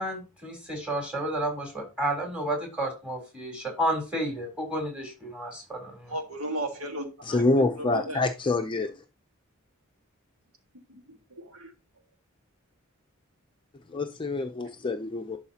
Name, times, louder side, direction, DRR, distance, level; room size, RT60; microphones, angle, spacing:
voice 1, 0.0-6.1, right 1 dB, 5° right, 3.5 m, -31 dB
voice 2, 6.1-7.4 7.8-8.3 10.9-11.7, right 1 dB, 90° right, 1.7 m, -35 dB
voice 3, 7.3-8.9 13.9-15.4, left 2 dB, 25° left, 0.6 m, -26 dB
11.0 x 4.7 x 2.9 m
head